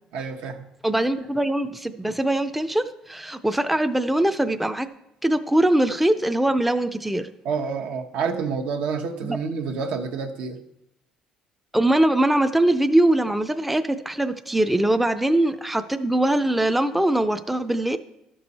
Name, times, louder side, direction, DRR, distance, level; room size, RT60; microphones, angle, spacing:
voice 1, 0.1-0.7 7.4-10.6, right 5 dB, 80° right, 4 dB, 1.0 m, -28 dB
voice 2, 0.8-4.9 5.2-7.3 9.2-9.4 11.7-18.0, right 1 dB, 5° right, 9 dB, 0.4 m, -22 dB
12.5 x 6.2 x 4.1 m, 0.85 s
cardioid pair, 125°, 2 cm